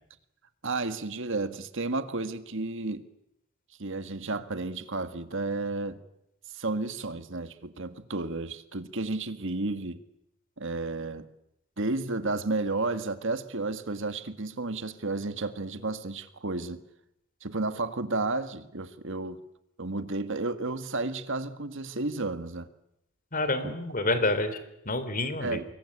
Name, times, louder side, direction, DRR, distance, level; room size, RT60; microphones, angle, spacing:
voice 1, 0.6-3.1 3.8-6.0 6.5-10.0 10.6-11.3 11.8-16.8 17.4-19.4 19.8-22.7 23.6-24.1 25.4-25.7, right 3 dB, 60° right, 1.7 m, -32 dB
voice 2, 23.3-24.6 24.8-25.6, left 2 dB, 40° left, 3.2 m, -28 dB
25.5 x 22.5 x 8.7 m
head